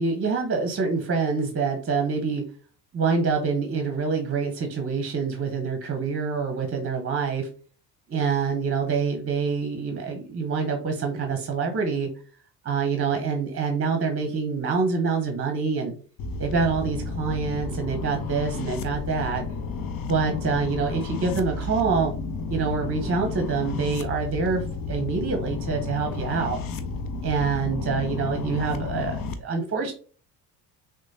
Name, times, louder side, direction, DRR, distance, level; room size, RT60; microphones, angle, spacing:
voice 1, 0.0-2.4 2.9-7.5 8.1-12.1 12.6-15.9 16.4-19.4 20.1-22.1 22.5-26.6 27.2-29.9, right 5 dB, 25° right, 4 dB, 0.9 m, -26 dB
sound 1, 16.2-29.3, left 4 dB, 45° left, 0.7 m, -32 dB
6.0 x 2.3 x 2.7 m, 0.40 s
hypercardioid pair, 60°, 49 cm